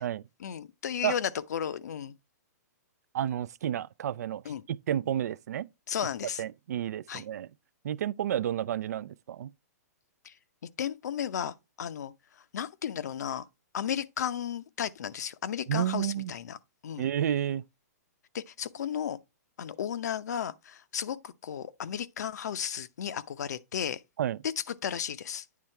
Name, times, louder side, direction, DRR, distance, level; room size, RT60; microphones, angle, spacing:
voice 1, 0.4-2.1 4.4-4.6 5.9-6.4 7.1-7.2 10.2-10.3 10.8-12.1 12.5-13.4 13.7-16.6 16.8-17.1 18.3-19.2 19.6-24.0 24.6-25.4, left 9 dB, 75° left, 0.6 m, -34 dB
voice 2, 3.1-4.4 4.7-5.7 6.4-7.5 7.8-9.5 15.7-16.3 17.0-17.6 24.2-24.4, right 10 dB, 70° right, 0.3 m, -31 dB
9.3 x 3.7 x 4.4 m
hypercardioid pair, 155°, 9 cm